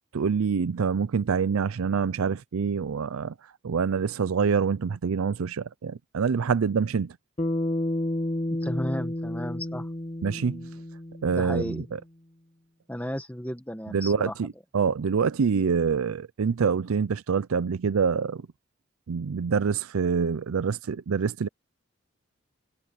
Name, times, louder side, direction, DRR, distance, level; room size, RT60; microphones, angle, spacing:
voice 1, 0.1-3.3 3.6-7.2 10.2-10.7 11.2-12.0 13.9-18.5 19.1-21.5, right 6 dB, 75° right, 0.5 m, -26 dB
Bass guitar, 7.4-11.8, left 1 dB, 30° left, 1.6 m, -31 dB
voice 2, 8.6-9.9 11.3-11.8 12.9-14.3, equal, 5° left, 1.4 m, -33 dB
head